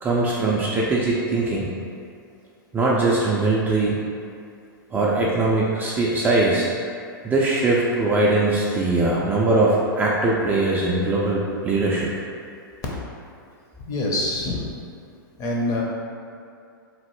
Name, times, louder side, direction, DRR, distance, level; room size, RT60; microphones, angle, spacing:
voice 1, 0.0-1.7 2.7-4.0 4.9-6.7 7.2-12.1, right 2 dB, 15° right, -5 dB, 0.3 m, -21 dB
voice 2, 13.9-14.7 15.4-15.8, left 1 dB, 30° left, -2 dB, 0.6 m, -25 dB
3.0 x 2.0 x 3.0 m, 2.4 s
hypercardioid pair, 115°, 12 cm